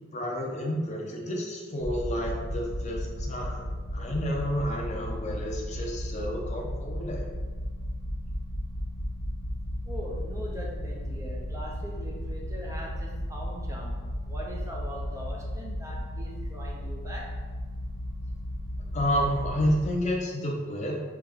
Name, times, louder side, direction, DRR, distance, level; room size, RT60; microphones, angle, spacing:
voice 1, 0.1-3.7 3.9-7.3 18.9-21.0, equal, 35° left, -1 dB, 0.6 m, -30 dB
sound 1, 1.8-19.9, equal, 60° right, 0.8 m, -34 dB
voice 2, 9.9-14.0 14.3-17.3, equal, 15° right, -2 dB, 0.5 m, -41 dB
3.4 x 3.3 x 3.5 m, 1.4 s
head